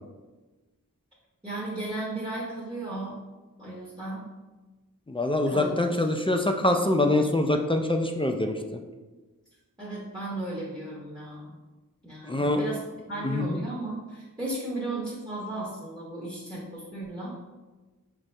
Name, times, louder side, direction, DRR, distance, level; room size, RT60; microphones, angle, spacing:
voice 1, 1.4-3.2 3.6-4.2 5.5-5.9 9.8-11.6 12.0-12.8 13.1-17.4, right 2 dB, 15° right, -5 dB, 0.9 m, -35 dB
voice 2, 5.1-8.8 12.2-12.7 13.2-13.6, left 1 dB, 15° left, 4 dB, 0.3 m, -25 dB
5.0 x 2.7 x 3.2 m, 1.2 s
wide cardioid pair, 50°, 34 cm